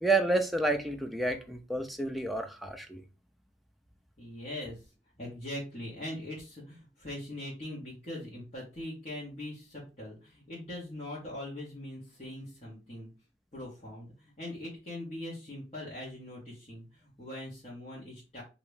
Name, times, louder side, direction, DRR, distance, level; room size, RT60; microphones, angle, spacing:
voice 1, 0.0-3.0, right 2 dB, ahead, 0.4 m, -29 dB
voice 2, 4.2-4.8 5.2-13.1 13.5-18.4, left 1 dB, 35° left, 1.3 m, -41 dB
2.9 x 2.8 x 3.3 m
head